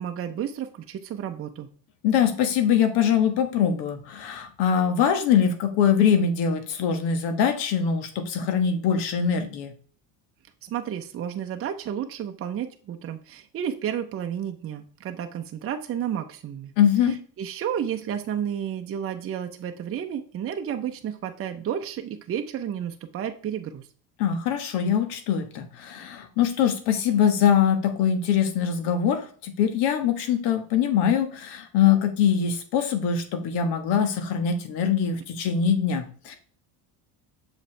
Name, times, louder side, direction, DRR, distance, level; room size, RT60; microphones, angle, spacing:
voice 1, 0.0-1.7 10.6-16.7 17.1-23.9, right 9 dB, 35° right, 5 dB, 0.7 m, -31 dB
voice 2, 2.0-9.7 16.8-17.1 24.2-36.4, left 8 dB, 70° left, 7 dB, 1.4 m, -23 dB
6.8 x 4.8 x 3.3 m, 0.43 s
cardioid pair, 120°, 41 cm